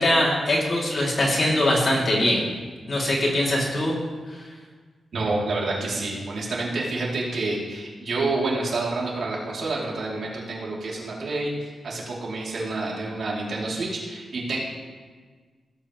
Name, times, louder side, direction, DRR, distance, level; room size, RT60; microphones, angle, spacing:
voice 1, 0.0-2.4 2.9-3.9, left 1 dB, 45° left, -4 dB, 2.7 m, -22 dB
voice 2, 5.1-14.6, right 2 dB, 65° right, -4 dB, 3.0 m, -28 dB
16.0 x 7.4 x 3.1 m, 1.5 s
cardioid pair, 100°, 0 cm